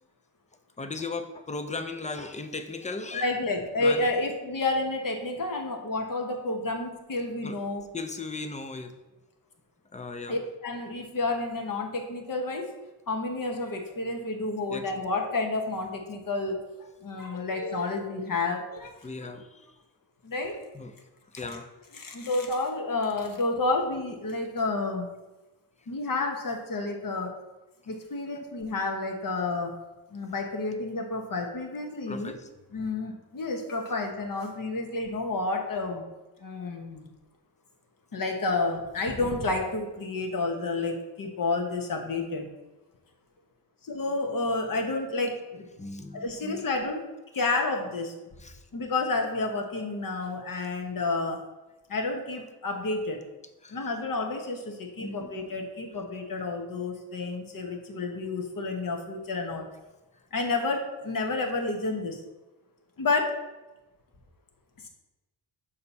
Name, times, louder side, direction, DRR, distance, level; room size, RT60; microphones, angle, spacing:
voice 1, 0.8-3.3 3.8-4.1 7.4-7.6 7.9-8.9 9.9-10.4 14.7-14.8 19.0-19.7 20.7-20.9 21.3-21.7 32.1-32.5 45.8-46.7 48.4-48.6 53.6-53.8 55.0-55.5, left 3 dB, 15° left, 8 dB, 0.5 m, -37 dB
voice 2, 3.1-7.8 10.3-12.7 13.1-16.6 17.0-19.3 20.2-20.6 21.9-25.1 25.9-27.3 27.9-29.8 30.1-32.3 32.7-36.0 36.4-37.1 38.1-42.5 43.8-45.6 46.1-47.0 47.3-48.1 48.7-51.4 51.9-53.2 53.7-59.7 60.3-62.2 63.0-63.4, left 3 dB, 45° left, 3 dB, 1.1 m, -30 dB
6.5 x 2.9 x 5.3 m, 1.1 s
cardioid pair, 90°, 45 cm